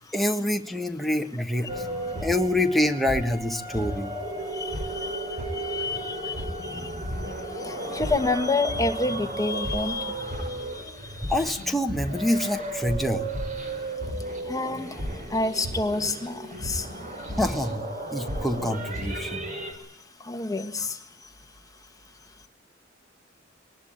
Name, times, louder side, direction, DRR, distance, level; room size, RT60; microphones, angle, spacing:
voice 1, 0.1-1.9 2.2-4.1 11.3-13.2 17.3-19.4, left 1 dB, ahead, 3 dB, 1.5 m, -26 dB
sound 1, 1.7-19.7, right 1 dB, 40° right, 4.8 m, -33 dB
voice 2, 4.4-11.3 14.2-17.3 19.2-19.4 19.7-19.9 20.2-21.3, left 3 dB, 20° left, 7 dB, 1.4 m, -30 dB
23.0 x 19.5 x 8.9 m, 0.75 s
head